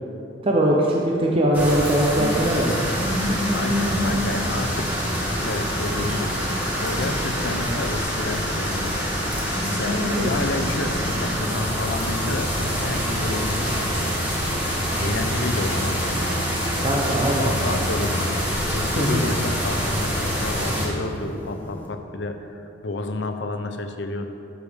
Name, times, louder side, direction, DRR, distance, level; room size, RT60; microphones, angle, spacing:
voice 1, 0.4-2.7 16.8-17.4 18.9-19.2, right 1 dB, 30° right, -2 dB, 0.6 m, -21 dB
sound 1, 1.5-20.9, equal, 10° right, 1.6 m, -26 dB
sound 2, 2.2-21.9, equal, 10° left, 1.0 m, -32 dB
voice 2, 3.5-4.9 5.2-6.4 6.8-9.0 9.7-14.0 15.0-16.4 16.8-18.3 18.7-24.3, left 2 dB, 65° left, 6 dB, 0.6 m, -30 dB
11.0 x 6.8 x 3.5 m, 2.7 s
head